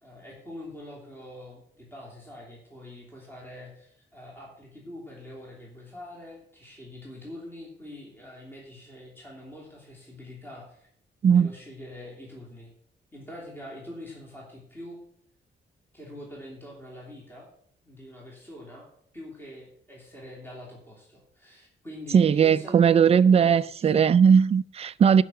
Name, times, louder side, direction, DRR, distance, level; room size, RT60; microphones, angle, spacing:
voice 1, 0.0-10.9 11.2-12.7 13.1-15.0 15.9-17.5 17.9-18.9 19.1-24.1, left 1 dB, 10° left, 3.0 m, -44 dB
voice 2, 22.1-25.2, right 7 dB, 35° right, 0.4 m, -18 dB
12.0 x 5.6 x 7.8 m
wide cardioid pair, 145°, 18 cm